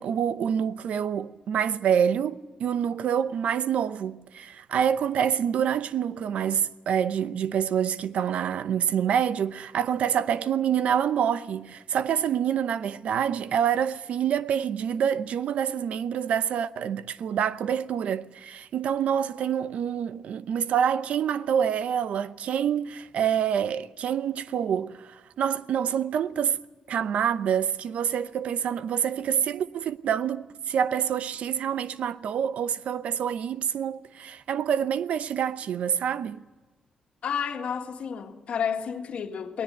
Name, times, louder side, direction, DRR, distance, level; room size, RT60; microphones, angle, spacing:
voice 1, 0.0-26.6 26.9-36.4, right 8 dB, 75° right, 0.8 m, -27 dB
voice 2, 37.2-39.6, left 7 dB, 70° left, 1.9 m, -31 dB
20.0 x 18.5 x 9.7 m
cardioid pair, 75°, 2 cm